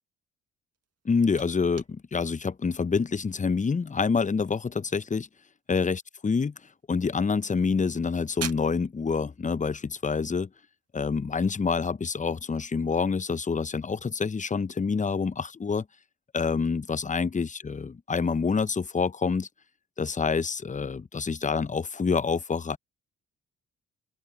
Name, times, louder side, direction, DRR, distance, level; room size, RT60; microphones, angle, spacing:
sound 1, 0.7-11.5, right 7 dB, 45° right, 1.8 m, -48 dB
voice 1, 1.0-5.3 5.7-6.5 6.9-10.5 10.9-15.8 16.3-19.5 20.0-22.8, left 5 dB, 20° left, 0.7 m, -27 dB
open air
hypercardioid pair, 50°, 34 cm